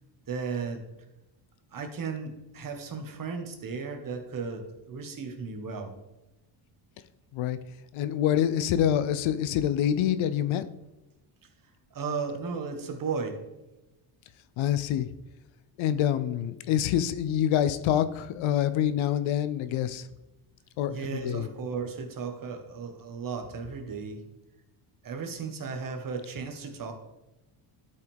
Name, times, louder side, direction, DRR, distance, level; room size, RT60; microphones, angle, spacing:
voice 1, 0.3-0.8 1.7-5.9 11.9-13.4 20.9-24.2 25.0-26.9, right 5 dB, 40° right, 5 dB, 1.5 m, -35 dB
voice 2, 7.9-10.6 14.6-15.1 15.8-20.1 20.8-21.5, left 10 dB, 70° left, 13 dB, 0.7 m, -26 dB
11.5 x 5.5 x 3.5 m, 0.99 s
cardioid pair, 110°, 50 cm